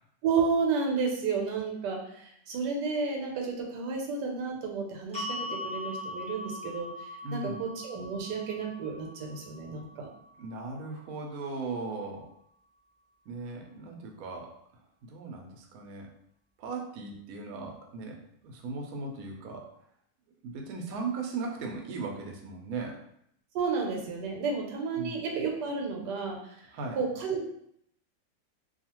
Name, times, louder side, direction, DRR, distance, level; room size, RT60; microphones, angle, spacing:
voice 1, 0.2-10.1 23.5-26.6 27.0-27.4, right 5 dB, 85° right, 1 dB, 1.2 m, -32 dB
sound 1, 5.1-11.3, left 1 dB, 10° left, 0.4 m, -41 dB
voice 2, 7.2-7.6 10.4-12.3 13.3-14.5 15.1-16.1 16.6-19.7 20.4-23.0 25.0-25.2 26.7-27.0, right 3 dB, 70° right, 1 dB, 1.0 m, -37 dB
2.7 x 2.4 x 2.8 m, 0.71 s
omnidirectional pair, 1.8 m